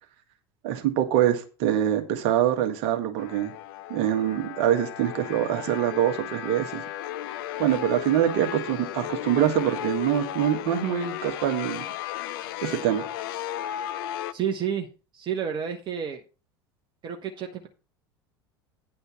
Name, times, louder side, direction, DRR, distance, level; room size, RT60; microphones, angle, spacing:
voice 1, 0.6-3.5 3.9-6.8 7.6-11.8 12.6-13.1, right 11 dB, 55° right, 1.7 m, -24 dB
sound 1, 3.2-14.3, left 12 dB, 60° left, 0.6 m, -35 dB
voice 2, 14.3-14.9 15.1-16.2 17.0-17.7, right 8 dB, 35° right, 1.3 m, -30 dB
9.9 x 4.3 x 7.0 m
figure-of-eight pair, 75°, 13 cm